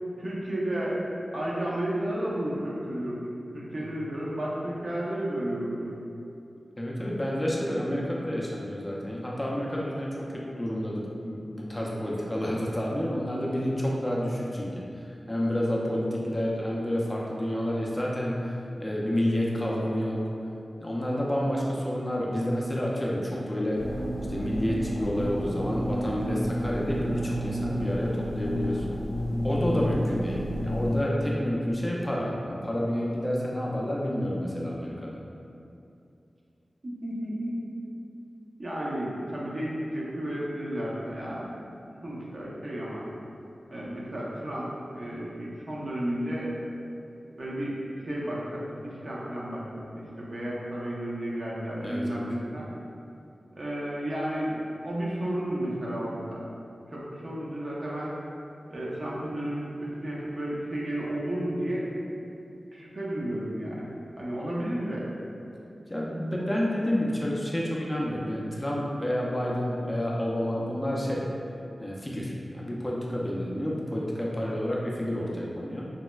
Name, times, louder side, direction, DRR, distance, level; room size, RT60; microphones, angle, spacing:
voice 1, 0.2-1.0 1.3-3.2 3.5-5.9 37.0-37.6 38.6-43.1 43.7-44.7 44.9-46.5 47.4-49.6 49.9-52.7 53.6-56.4 56.9-58.1 58.7-61.9 62.7-63.9 64.2-65.0, right 1 dB, 55° right, -6 dB, 0.6 m, -32 dB
voice 2, 6.8-20.2 20.8-23.8 24.3-28.9 29.4-35.2 51.8-52.3 65.9-71.3 71.8-75.9, equal, 20° left, -4 dB, 0.4 m, -29 dB
sound 1, 23.7-31.0, equal, 85° right, 0.8 m, -30 dB
4.0 x 2.0 x 2.2 m, 2.6 s
wide cardioid pair, 70°, 0 cm